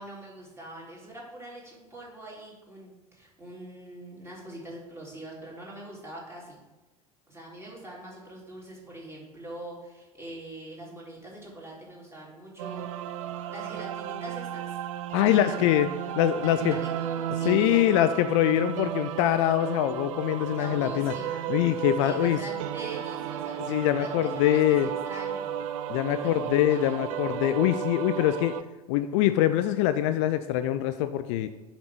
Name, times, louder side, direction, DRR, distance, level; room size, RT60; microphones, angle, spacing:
voice 1, 0.0-6.6 7.3-12.8 13.3-14.8 15.2-15.6 16.0-17.9 18.4-18.5 20.5-21.3 21.9-25.6 26.1-27.0, right 1 dB, 15° right, -3 dB, 3.1 m, -43 dB
sound 1, 12.6-28.6, right 10 dB, 55° right, 0.5 m, -34 dB
voice 2, 15.1-15.9 16.2-16.8 17.4-21.1 21.5-22.4 23.7-24.9 25.9-28.6 28.9-31.5, left 12 dB, 50° left, 10 dB, 0.5 m, -24 dB
7.0 x 5.1 x 6.0 m, 1.1 s
figure-of-eight pair, 75°, 20 cm